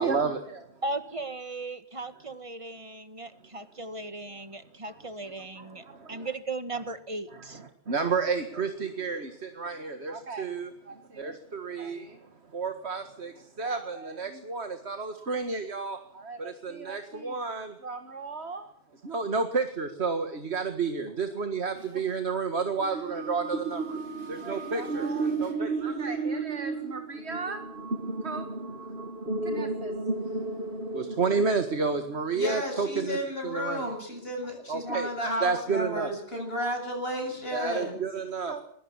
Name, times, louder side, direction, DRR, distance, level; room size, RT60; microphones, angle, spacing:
voice 1, 0.0-0.8 5.6-6.3 7.3-18.7 18.9-24.0 24.3-27.6 28.2-28.5 29.4-29.9 30.2-30.4 30.9-33.2 33.4-33.9 34.7-35.1 35.4-36.1 37.5-38.6, right 4 dB, 90° right, 7 dB, 2.1 m, -31 dB
voice 2, 0.8-7.6, right 2 dB, 30° right, 11 dB, 1.8 m, -37 dB
sound 1, 22.8-32.2, right 3 dB, 65° right, 2.1 m, -33 dB
voice 3, 24.0-25.5 32.3-38.0, equal, 65° left, 3 dB, 8.0 m, -34 dB
22.5 x 22.0 x 7.2 m, 0.64 s
omnidirectional pair, 1.1 m